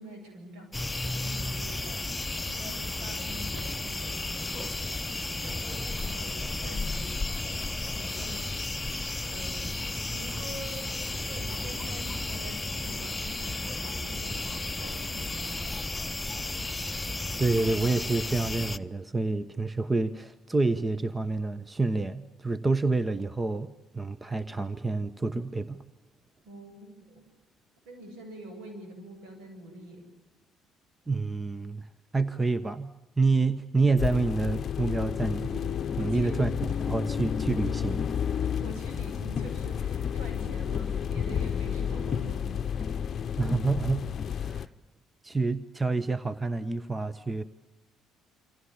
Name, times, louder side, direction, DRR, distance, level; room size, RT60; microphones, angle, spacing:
voice 1, 0.0-7.6 7.9-8.7 9.3-9.7 10.1-16.1 26.4-27.2 27.8-30.1 36.0-36.5 38.4-43.0 44.5-44.6, right 1 dB, 70° right, 5 dB, 7.9 m, -46 dB
sound 1, 0.7-18.8, left 2 dB, 15° left, 0.9 m, -33 dB
voice 2, 17.4-25.8 31.1-31.9 32.1-32.9 33.2-38.4 43.4-44.1 44.4-44.7 45.2-47.4, right 3 dB, 20° right, 15 dB, 1.1 m, -28 dB
sound 2, 34.0-44.7, left 8 dB, 45° left, 0.8 m, -31 dB
27.5 x 25.5 x 7.4 m, 1.0 s
hypercardioid pair, 50°, 0 cm